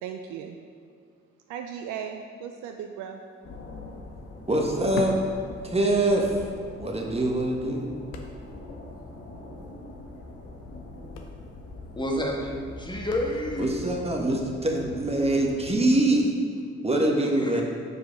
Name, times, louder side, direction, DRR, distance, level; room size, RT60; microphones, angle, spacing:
voice 1, 0.0-0.6 1.5-3.2, right 8 dB, 70° right, 4 dB, 0.5 m, -36 dB
sound 1, 3.2-3.3 3.6-6.2 6.5-6.6 7.3-8.8 9.0-9.1 9.4-9.6 10.5-10.7 10.9-13.8 14.4-14.5, left 5 dB, 85° left, 0.6 m, -41 dB
sound 2, 3.4-15.7, left 2 dB, 45° left, 1.3 m, -43 dB
voice 2, 4.5-5.2 5.6-6.3 6.8-7.9 13.6-16.3 16.8-17.6, right 1 dB, 20° right, 0 dB, 1.4 m, -24 dB
voice 3, 12.0-13.7 17.3-17.6, left 1 dB, 15° left, -1 dB, 1.5 m, -29 dB
6.5 x 4.8 x 5.1 m, 2.2 s
hypercardioid pair, 40°, 32 cm